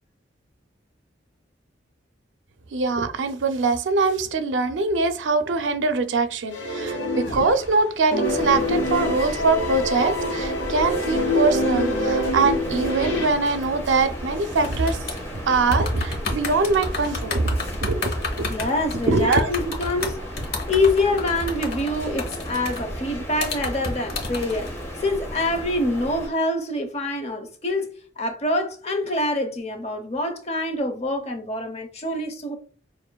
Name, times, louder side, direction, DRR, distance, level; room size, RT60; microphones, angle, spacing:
voice 1, 2.7-15.0 15.5-17.5 17.9-18.5 19.1-19.5, right 3 dB, 85° right, 0.5 m, -23 dB
sound 1, 6.5-7.8 8.1-13.3, left 1 dB, 85° left, 1.2 m, -25 dB
sound 2, 8.2-26.3, equal, 15° left, 1.2 m, -35 dB
sound 3, 14.6-15.4 15.7-23.0 23.4-24.7, left 2 dB, 55° left, 1.0 m, -30 dB
voice 2, 18.5-20.2 20.7-24.7 25.0-27.9 28.2-32.6, left 2 dB, 35° left, 0.8 m, -25 dB
6.5 x 2.5 x 2.2 m
head